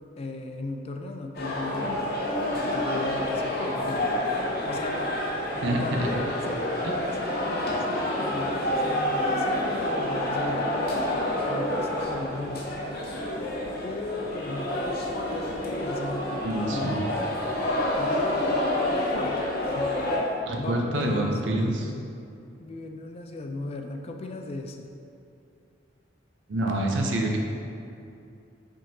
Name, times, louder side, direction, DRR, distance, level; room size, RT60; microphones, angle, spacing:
voice 1, 0.2-2.0 2.5-4.1 4.6-5.0 5.8-12.7 13.8-14.8 15.7-17.1 17.9-18.6 18.9-21.4 22.6-24.9, left 2 dB, 35° left, 3 dB, 0.3 m, -37 dB
sound 1, 1.3-20.2, left 1 dB, 55° left, 0.7 m, -28 dB
voice 2, 5.6-6.1 16.4-17.0 20.5-21.9 26.5-27.4, right 1 dB, 85° right, 1 dB, 0.6 m, -27 dB
5.2 x 3.6 x 2.7 m, 2.6 s
head